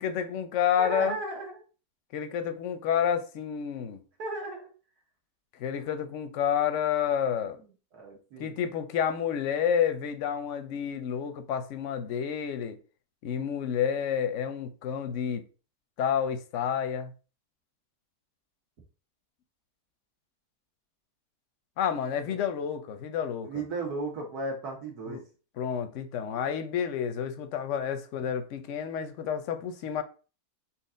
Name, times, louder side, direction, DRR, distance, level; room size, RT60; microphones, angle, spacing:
voice 1, 0.0-1.2 2.1-4.0 5.6-7.6 8.4-12.8 13.2-15.4 16.0-17.1 21.8-23.5 25.1-25.2 25.6-30.0, left 8 dB, 65° left, 0.8 m, -29 dB
voice 2, 0.8-1.6 4.2-4.7 7.9-8.6 22.2-22.4 23.4-25.2, right 3 dB, 75° right, 1.9 m, -35 dB
4.4 x 2.9 x 3.7 m
omnidirectional pair, 1.7 m